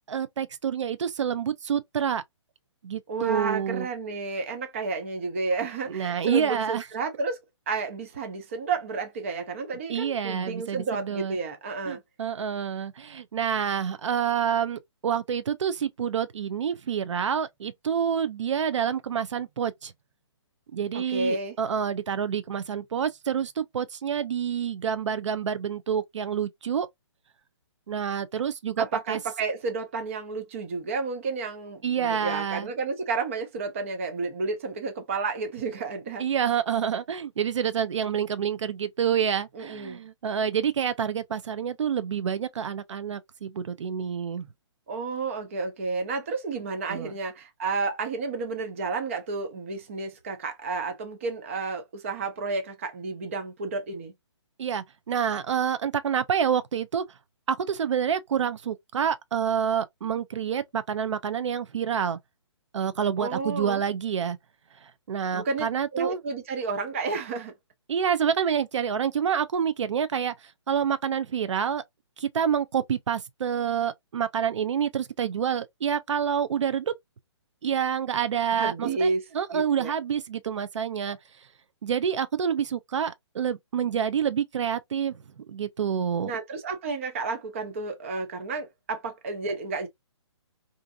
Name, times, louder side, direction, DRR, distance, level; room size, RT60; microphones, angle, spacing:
voice 1, 0.1-2.2 2.8-3.9 5.9-6.9 9.9-11.4 11.9-19.9 20.7-26.9 27.9-29.2 31.8-32.7 36.2-44.5 46.9-47.1 54.6-57.0 57.5-62.2 62.7-64.4 64.8-66.2 67.9-71.8 72.2-76.9 77.6-79.1 79.3-81.2 81.8-86.3, right 8 dB, 80° right, 0.4 m, -28 dB
voice 2, 3.1-7.4 7.7-12.0 20.9-21.6 28.8-36.2 39.6-40.0 44.9-54.1 63.2-63.8 65.3-65.6 65.9-67.5 78.6-79.2 79.5-79.9 86.2-89.9, right 4 dB, 30° right, 0.5 m, -31 dB
2.6 x 2.5 x 2.2 m
hypercardioid pair, 170°, 15 cm